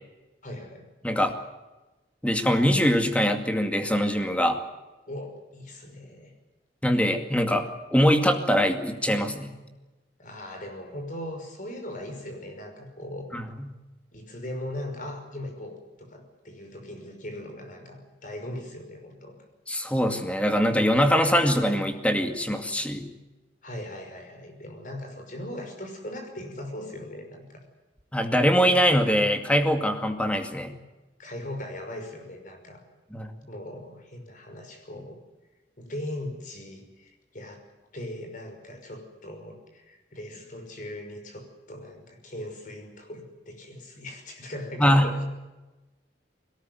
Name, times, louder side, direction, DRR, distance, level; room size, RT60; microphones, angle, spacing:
voice 1, 0.4-0.9 5.1-6.3 10.2-13.3 14.1-19.4 23.6-27.6 31.2-32.8 33.5-35.2 35.8-37.6 37.9-45.2, left 1 dB, 45° left, 5 dB, 5.8 m, -39 dB
voice 2, 1.0-1.3 2.2-4.6 6.8-7.7 7.9-9.6 13.3-13.7 19.7-23.1 28.1-30.8 33.1-33.3 44.8-45.1, equal, 5° left, 6 dB, 2.3 m, -23 dB
21.5 x 18.5 x 9.5 m, 1.1 s
head